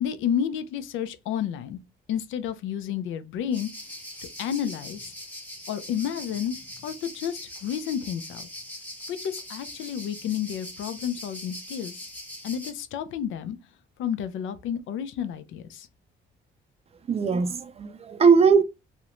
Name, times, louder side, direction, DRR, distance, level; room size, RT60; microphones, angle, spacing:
voice 1, 0.0-1.8 2.1-3.7 4.4-5.1 5.7-6.6 6.8-8.5 9.1-12.0 12.4-13.6 14.0-15.9, left 9 dB, 80° left, 0.4 m, -31 dB
sound 1, 3.5-12.7, left 1 dB, 10° left, 0.8 m, -41 dB
voice 2, 17.1-18.6, right 5 dB, 30° right, 0.4 m, -20 dB
2.4 x 2.1 x 2.8 m
cardioid pair, 90°, 20 cm